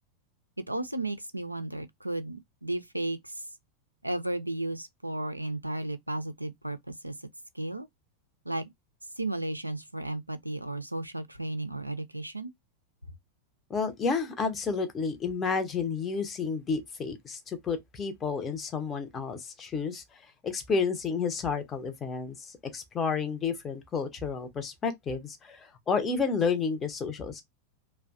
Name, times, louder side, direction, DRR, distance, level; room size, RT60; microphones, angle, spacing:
voice 1, 0.6-3.3 4.0-7.1 7.5-7.9 8.5-8.7 9.2-12.5, right 2 dB, 85° right, 0.3 m, -34 dB
voice 2, 13.7-27.4, left 5 dB, 20° left, 0.6 m, -31 dB
2.5 x 2.1 x 2.3 m
figure-of-eight pair, 90°, 0 cm